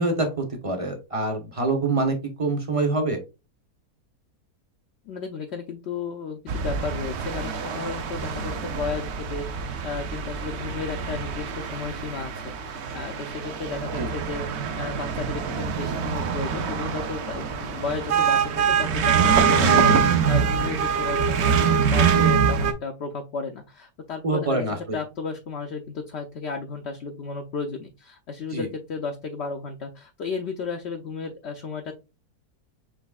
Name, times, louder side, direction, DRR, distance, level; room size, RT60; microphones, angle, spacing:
voice 1, 0.0-3.2 14.0-14.1 24.2-25.0 28.5-28.7, right 2 dB, 30° right, 3 dB, 0.7 m, -25 dB
voice 2, 5.1-31.9, left 4 dB, 65° left, 3 dB, 0.7 m, -34 dB
sound 1, 6.5-22.7, right 6 dB, 65° right, 0.7 m, -24 dB
6.1 x 3.1 x 2.3 m, 0.28 s
omnidirectional pair, 1.6 m